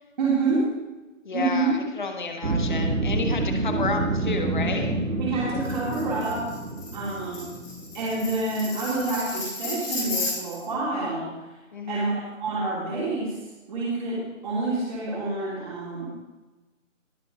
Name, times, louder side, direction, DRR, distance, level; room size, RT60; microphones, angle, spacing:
voice 1, 0.2-0.8 1.3-1.8 5.2-6.5 6.9-7.6 7.9-11.3 11.9-13.4 13.7-16.1, right 3 dB, 35° right, -7 dB, 3.2 m, -27 dB
voice 2, 1.2-5.0 11.7-12.2, left 4 dB, 35° left, 5 dB, 1.4 m, -31 dB
sound 1, 2.4-8.7, right 2 dB, 85° right, 1.7 m, -28 dB
Tambourine, 5.6-10.7, left 2 dB, 10° left, 2.6 m, -34 dB
20.0 x 6.9 x 3.9 m, 1.1 s
figure-of-eight pair, 155°, 40 cm